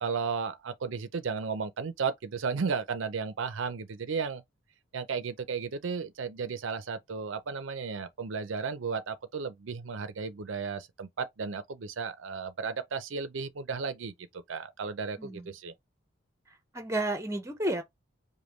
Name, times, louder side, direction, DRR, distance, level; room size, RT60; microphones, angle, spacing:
voice 1, 0.0-4.4 4.9-14.1 14.5-15.7, right 5 dB, 80° right, 0.5 m, -34 dB
voice 2, 15.2-15.5 16.7-17.8, right 1 dB, 15° right, 0.8 m, -31 dB
5.1 x 2.2 x 3.0 m
head